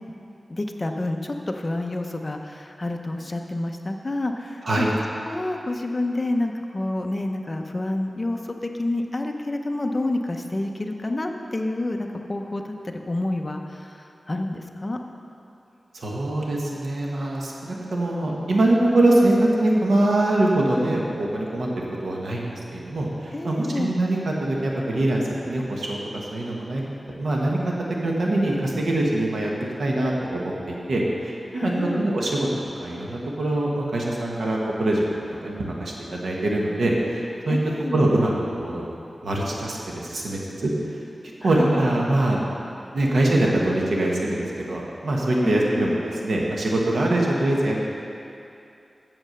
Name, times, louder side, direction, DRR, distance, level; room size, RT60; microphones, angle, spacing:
voice 1, 0.5-4.8 5.2-15.0 23.3-23.9 31.5-32.1 37.5-38.0 41.4-41.8 45.4-46.0, left 2 dB, 30° left, 3 dB, 0.7 m, -28 dB
voice 2, 15.9-26.8 27.1-27.6 28.0-29.5 29.8-32.5 32.8-35.0 35.4-37.6 37.9-38.3 38.6-38.8 39.2-41.0 41.4-42.4 42.9-47.8, right 1 dB, 85° right, -2 dB, 1.3 m, -23 dB
7.9 x 7.3 x 6.6 m, 2.7 s
wide cardioid pair, 105°, 0 cm